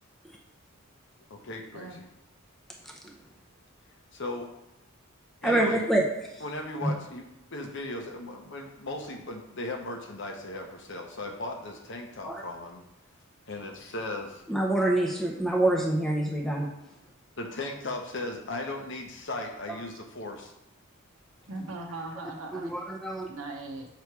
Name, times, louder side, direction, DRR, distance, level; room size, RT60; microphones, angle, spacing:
voice 1, 1.3-2.1 4.1-4.5 5.4-5.9 6.4-12.8 13.5-14.4 17.4-20.5, left 2 dB, 55° left, 3 dB, 0.9 m, -37 dB
voice 2, 5.4-6.0 6.8-6.9 12.2-12.4 14.5-16.7 22.5-23.3, right 1 dB, ahead, -1 dB, 0.6 m, -26 dB
voice 3, 21.5-22.7 23.3-23.9, right 2 dB, 70° right, 1 dB, 0.8 m, -39 dB
6.8 x 3.1 x 4.6 m, 0.93 s
head